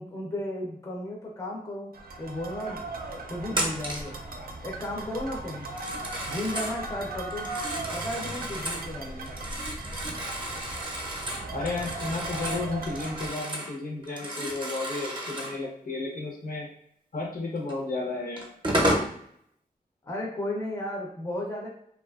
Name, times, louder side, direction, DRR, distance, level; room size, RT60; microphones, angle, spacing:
voice 1, 0.0-1.9 2.2-2.8 3.2-4.2 4.6-5.7 6.3-7.5 7.9-9.3 20.0-21.7, left 1 dB, 20° left, -2 dB, 0.6 m, -34 dB
sound 1, 1.9-13.3, right 2 dB, 70° right, 0.4 m, -38 dB
Telephone, 3.5-4.1 5.6-6.8 7.3-8.9 9.3-13.7 14.0-15.6 17.7-17.8 18.4-19.1, right 1 dB, 30° right, 0.6 m, -32 dB
voice 2, 11.5-16.7 17.1-18.5, left 3 dB, 65° left, -1 dB, 0.8 m, -33 dB
2.7 x 2.3 x 2.3 m, 0.69 s
wide cardioid pair, 90°, 16 cm